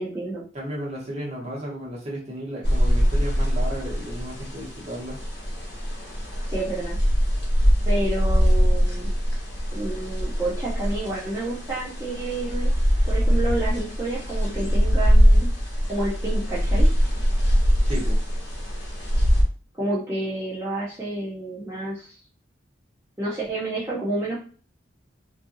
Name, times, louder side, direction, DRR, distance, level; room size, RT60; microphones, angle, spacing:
voice 1, 0.0-0.4 6.5-7.0 7.9-9.1 9.7-12.7 13.1-15.5 15.9-16.9 19.8-22.2 23.2-24.4, right 2 dB, 15° right, -8 dB, 0.5 m, -29 dB
voice 2, 0.5-5.2 17.8-18.2, equal, 35° right, -4 dB, 0.9 m, -34 dB
sound 1, 2.6-19.4, equal, 70° left, 0.9 m, -22 dB
2.6 x 2.5 x 2.6 m, 0.42 s
head